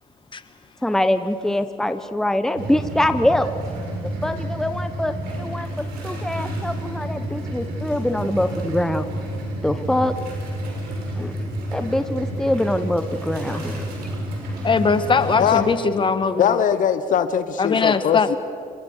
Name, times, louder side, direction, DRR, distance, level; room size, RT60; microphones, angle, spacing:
voice 1, 0.8-3.5 4.2-9.0 9.6-10.1 11.2-11.3 11.7-14.1, left 1 dB, 5° left, 10 dB, 1.1 m, -24 dB
sound 1, 2.5-15.6, right 1 dB, 85° right, 6.5 m, -30 dB
voice 2, 14.6-16.6 17.6-18.3, left 5 dB, 30° left, 11 dB, 1.7 m, -20 dB
voice 3, 15.4-15.7 16.4-18.4, left 8 dB, 55° left, 11 dB, 1.1 m, -21 dB
28.0 x 22.5 x 6.7 m, 2.3 s
cardioid pair, 95°, 16 cm